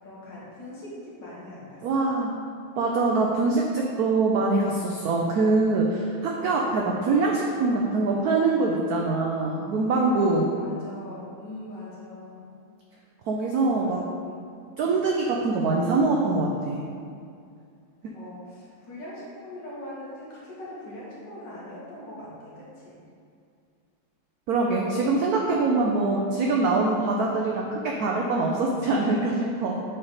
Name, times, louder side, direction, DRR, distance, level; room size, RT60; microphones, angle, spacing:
voice 1, 0.0-2.1 10.5-12.4 13.8-14.4 14.9-15.0 18.1-23.0, left 1 dB, 60° left, -8 dB, 2.2 m, -41 dB
voice 2, 1.8-2.3 2.8-10.5 13.3-14.0 14.8-16.8 24.5-29.8, right 3 dB, 80° right, -1 dB, 0.8 m, -24 dB
7.7 x 3.4 x 4.1 m, 2.4 s
omnidirectional pair, 2.2 m